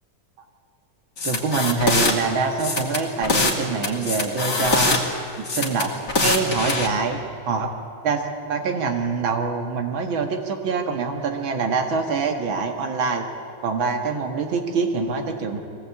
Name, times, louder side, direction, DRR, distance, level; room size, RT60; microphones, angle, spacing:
sound 1, 1.2-2.1 2.6-3.6 3.8-5.0 5.4-6.9, left 3 dB, 40° left, 2.8 m, -22 dB
voice 1, 1.2-5.0 5.4-5.9 6.2-7.2 7.5-7.7 8.0-13.2 13.6-15.6, right 4 dB, 75° right, 4 dB, 2.5 m, -25 dB
23.5 x 18.0 x 8.6 m, 2.6 s
omnidirectional pair, 2.2 m